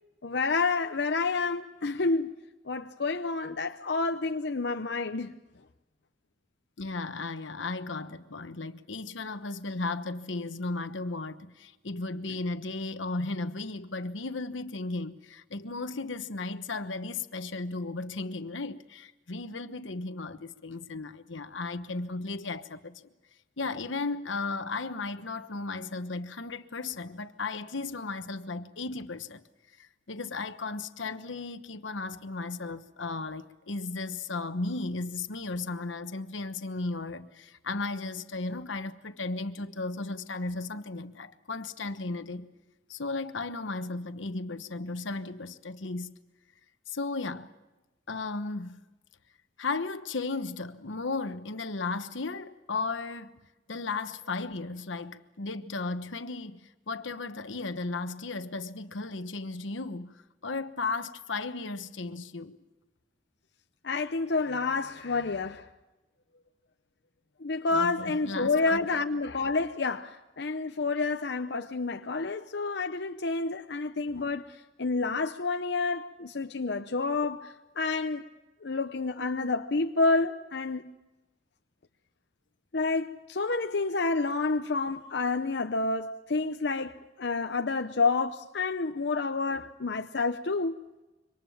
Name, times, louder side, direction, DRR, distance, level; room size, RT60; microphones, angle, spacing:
voice 1, 0.2-2.3 2.6-5.3 63.8-65.7 67.4-78.2 78.6-80.8 82.7-90.8, left 3 dB, 60° left, 0.8 m, -29 dB
voice 2, 6.8-23.0 23.6-29.4 29.8-42.5 42.9-46.1 46.9-47.5 48.1-48.8 49.6-53.4 53.7-60.1 60.4-62.6 67.7-68.8, left 3 dB, 85° left, 1.2 m, -35 dB
26.5 x 24.5 x 7.2 m
head